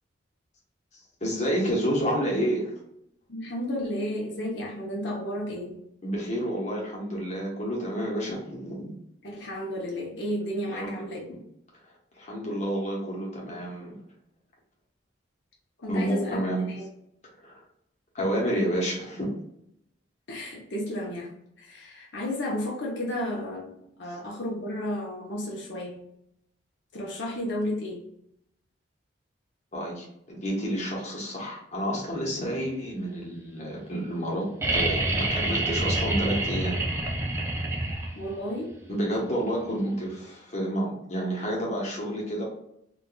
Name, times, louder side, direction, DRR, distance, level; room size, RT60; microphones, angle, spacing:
voice 1, 0.9-2.7 6.0-9.0 10.7-10.9 11.3-11.4 12.1-14.0 15.9-16.7 17.4-17.6 18.1-19.3 24.1-24.2 29.7-36.8 38.9-42.4, equal, 35° left, -3 dB, 1.0 m, -29 dB
voice 2, 3.3-5.8 9.2-11.3 15.8-16.8 20.3-21.3 21.6-26.0 26.9-28.1 38.2-38.8 39.7-39.9, left 1 dB, 65° left, -3 dB, 0.8 m, -33 dB
sound 1, 34.6-38.4 40.1-40.2, right 2 dB, 15° right, 0.4 m, -27 dB
3.9 x 2.5 x 2.3 m, 0.76 s
head